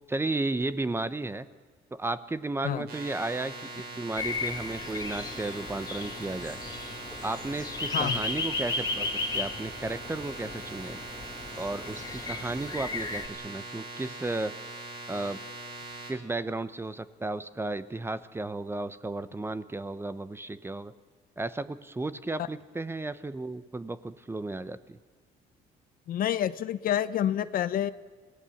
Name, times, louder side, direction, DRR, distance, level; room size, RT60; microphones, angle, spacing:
voice 1, 0.1-1.5 1.9-6.6 7.2-9.1 9.3-11.0 11.5-14.6 15.1-15.4 16.1-20.9 21.4-25.0, right 2 dB, 15° right, 14 dB, 0.8 m, -34 dB
sound 1, 2.9-16.1, right 2 dB, 65° right, 6.3 m, -42 dB
sound 2, 4.2-13.3, left 3 dB, 25° left, 2.1 m, -35 dB
voice 2, 26.1-27.9, left 11 dB, 55° left, 15 dB, 0.8 m, -28 dB
26.5 x 17.5 x 7.1 m, 1.5 s
cardioid pair, 110°, 17 cm